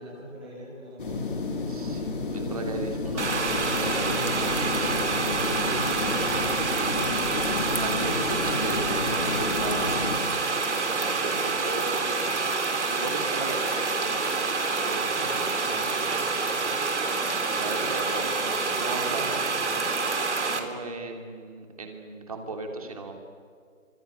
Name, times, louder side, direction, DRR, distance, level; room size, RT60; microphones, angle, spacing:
voice 1, 0.0-2.5 15.1-16.7 18.7-19.8, equal, 5° left, -8 dB, 1.1 m, -44 dB
sound 1, 1.0-10.2, left 3 dB, 40° left, 3.4 m, -31 dB
voice 2, 1.7-6.0 7.8-10.2 10.9-12.2 12.9-14.4 14.8-15.3 17.0-19.3 20.4-23.1, right 3 dB, 25° right, 3 dB, 2.9 m, -37 dB
sound 2, 3.2-20.6, right 4 dB, 55° right, 3.4 m, -27 dB
27.5 x 26.0 x 8.3 m, 2.1 s
hypercardioid pair, 180°, 41 cm